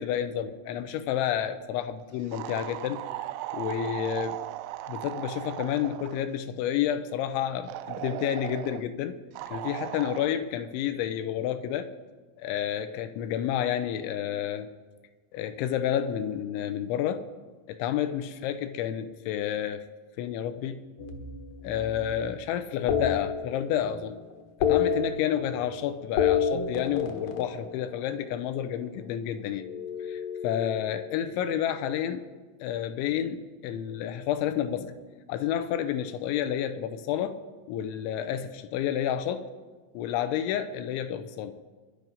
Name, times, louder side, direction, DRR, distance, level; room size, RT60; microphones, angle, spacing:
voice 1, 0.0-3.1 3.5-4.4 4.9-9.2 9.5-11.9 12.4-14.7 15.3-17.2 17.7-19.9 20.2-20.8 21.6-24.2 24.6-29.6 30.0-32.3 32.6-34.9 35.3-37.4 37.7-39.5 39.9-41.6, left 10 dB, 85° left, 10 dB, 3.0 m, -30 dB
sound 1, 2.3-6.3 7.7-8.8 9.4-10.3, right 15 dB, 80° right, 2.8 m, -37 dB
sound 2, 21.0-22.3 22.9-24.0 24.3-25.8 26.0-28.4 29.6-31.3, left 7 dB, 65° left, 2.4 m, -30 dB
23.5 x 11.0 x 5.4 m, 1.4 s
omnidirectional pair, 5.6 m